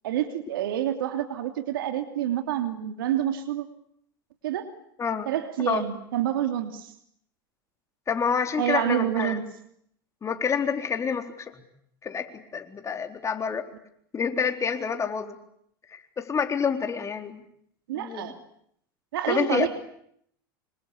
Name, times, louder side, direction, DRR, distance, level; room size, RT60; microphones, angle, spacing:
voice 1, 0.0-3.7 4.4-4.7 5.3-6.9 8.6-9.4 17.9-18.3 19.1-19.7, right 11 dB, 75° right, 7 dB, 2.9 m, -28 dB
voice 2, 5.0-5.3 5.7-5.8 8.1-9.4 10.2-11.6 12.0-13.7 14.1-15.4 15.9-17.4 17.9-18.3 19.3-19.7, left 6 dB, 25° left, 6 dB, 3.9 m, -28 dB
26.5 x 25.5 x 8.5 m, 0.70 s
hypercardioid pair, 95°, 12 cm